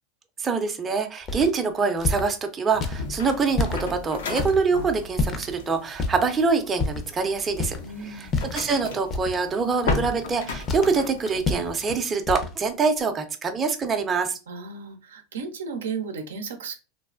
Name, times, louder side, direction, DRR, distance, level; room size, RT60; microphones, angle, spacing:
voice 1, 0.4-7.8 8.0-14.4, right 4 dB, 25° right, 5 dB, 0.5 m, -25 dB
sound 1, 1.3-1.5 2.0-2.3 2.8-3.0 3.5-3.8 4.4-4.6 5.2-5.5 6.0-6.3 6.8-7.1 7.5-7.9 8.2-8.7 9.1-9.4 9.9-10.3 10.7-11.0 11.4-11.7 12.3-12.5, left 3 dB, 35° left, 0.5 m, -27 dB
sound 2, 2.7-11.9, left 3 dB, 80° left, 0.6 m, -36 dB
voice 2, 7.8-8.4 14.5-16.8, right 5 dB, 90° right, 6 dB, 0.5 m, -34 dB
3.2 x 2.1 x 2.4 m, 0.32 s
hypercardioid pair, 100°, 0 cm